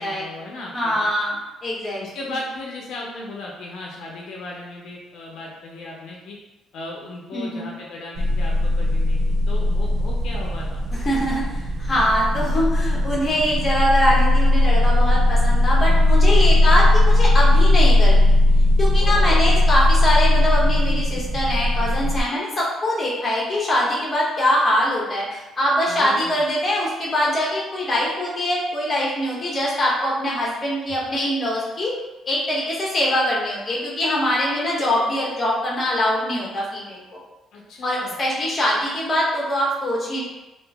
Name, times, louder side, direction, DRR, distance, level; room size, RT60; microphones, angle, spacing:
voice 1, 0.0-1.1 2.0-6.4 6.7-10.8 12.4-12.7 16.3-16.8 19.0-19.6 25.9-26.4 37.5-38.2, left 2 dB, 75° left, -3 dB, 0.6 m, -36 dB
voice 2, 0.7-2.0 7.3-7.7 11.0-18.4 18.8-31.9 32.3-37.2 37.8-40.2, equal, 25° left, -5 dB, 1.0 m, -23 dB
sound 1, 8.2-22.2, left 1 dB, 50° right, 0.4 m, -18 dB
2.9 x 2.5 x 3.4 m, 1.0 s
cardioid pair, 140°, 0 cm